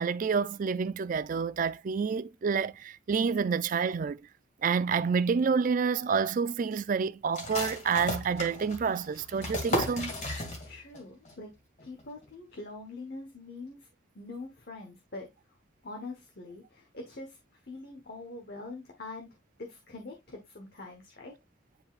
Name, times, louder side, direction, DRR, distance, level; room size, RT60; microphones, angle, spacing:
voice 1, 0.0-4.2 4.6-10.1, right 5 dB, 45° right, 0.3 m, -28 dB
sound 1, 7.3-11.0 11.3-11.4 11.8-12.3, left 1 dB, 40° left, 1.8 m, -34 dB
voice 2, 10.6-11.5 11.8-13.8 14.1-15.3 15.8-17.4 17.7-19.3 19.6-21.3, left 2 dB, 55° left, 1.2 m, -43 dB
9.7 x 4.0 x 2.4 m
head